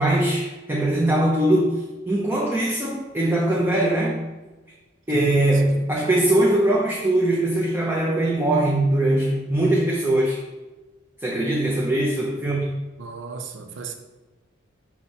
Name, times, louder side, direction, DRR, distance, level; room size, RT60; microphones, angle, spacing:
voice 1, 0.0-4.2 5.1-10.4 11.2-12.7, right 1 dB, 10° right, 0.6 m, -21 dB
voice 2, 13.0-14.0, right 4 dB, 75° right, 0.6 m, -35 dB
5.6 x 3.1 x 5.5 m
head